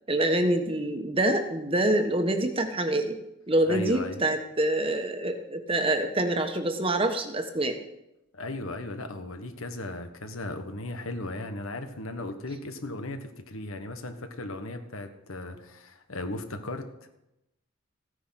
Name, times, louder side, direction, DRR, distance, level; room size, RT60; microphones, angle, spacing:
voice 1, 0.1-3.2 3.5-7.8, right 1 dB, 25° right, 6 dB, 1.3 m, -26 dB
voice 2, 3.7-4.2 8.3-16.9, left 2 dB, 85° left, 7 dB, 1.5 m, -36 dB
15.5 x 9.7 x 5.9 m, 0.89 s
head